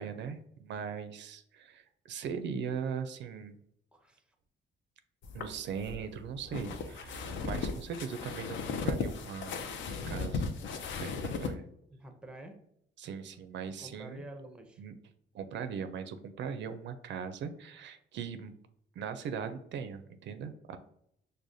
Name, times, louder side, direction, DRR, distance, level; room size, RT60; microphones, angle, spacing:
voice 1, 0.0-3.6 5.3-10.5 11.0-11.7 13.0-14.2 14.8-14.9 15.3-18.5 19.0-20.8, right 6 dB, 65° right, 9 dB, 0.4 m, -39 dB
voice 2, 3.9-4.2 11.9-12.6 13.8-14.8, right 1 dB, 5° right, 6 dB, 0.6 m, -48 dB
sound 1, 5.2-11.5, left 4 dB, 70° left, 0.5 m, -36 dB
4.7 x 2.2 x 2.6 m, 0.73 s
cardioid pair, 90°, 20 cm